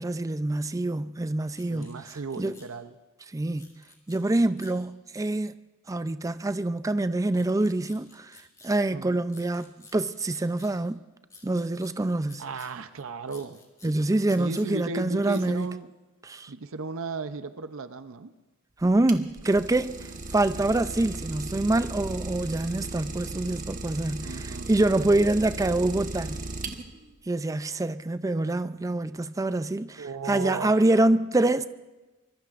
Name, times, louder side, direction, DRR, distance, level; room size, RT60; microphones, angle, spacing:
voice 1, 0.0-2.0 2.4-2.6 3.3-3.7 4.1-5.5 5.9-8.3 8.6-11.0 11.4-12.4 13.8-15.7 16.2-16.5 18.8-20.0 20.3-26.4 27.3-31.7, right 2 dB, 15° right, 0.4 m, -26 dB
sound 1, 1.5-2.7 3.5-4.8 7.3-8.7 9.3-10.7 11.3-12.7 13.3-14.7 15.3-15.7, left 3 dB, 15° left, 2.7 m, -52 dB
voice 2, 1.7-2.9 8.9-9.2 12.4-13.6 14.4-15.9 16.5-18.3 24.2-24.7 30.0-30.7, right 4 dB, 65° right, 0.6 m, -35 dB
Idling, 18.8-27.1, right 3 dB, 40° right, 1.2 m, -37 dB
24.5 x 21.5 x 2.5 m
head